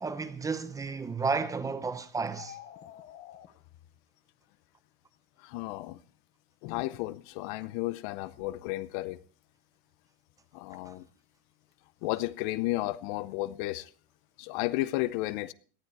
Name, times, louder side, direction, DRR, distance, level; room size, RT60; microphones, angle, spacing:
voice 1, 0.0-2.6 10.9-11.0, right 4 dB, 10° right, 0.8 m, -32 dB
sound 1, 2.3-3.5, left 11 dB, 35° left, 1.2 m, -47 dB
voice 2, 5.4-6.0 6.6-9.2 10.5-11.1 12.0-13.9 14.4-15.5, left 18 dB, 55° left, 0.7 m, -33 dB
18.0 x 12.5 x 4.7 m
supercardioid pair, 160°, 29 cm